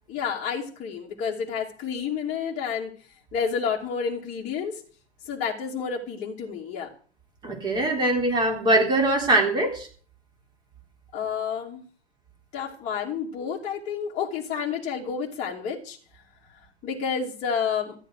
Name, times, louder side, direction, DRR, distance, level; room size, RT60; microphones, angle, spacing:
voice 1, 0.1-2.9 3.3-4.8 5.3-6.9 11.1-11.8 12.5-16.0 16.8-17.9, left 6 dB, 20° left, -5 dB, 2.5 m, -30 dB
voice 2, 7.4-9.9, right 2 dB, 10° right, 2 dB, 3.8 m, -22 dB
14.0 x 10.0 x 6.5 m, 0.44 s
hypercardioid pair, 135°, 35 cm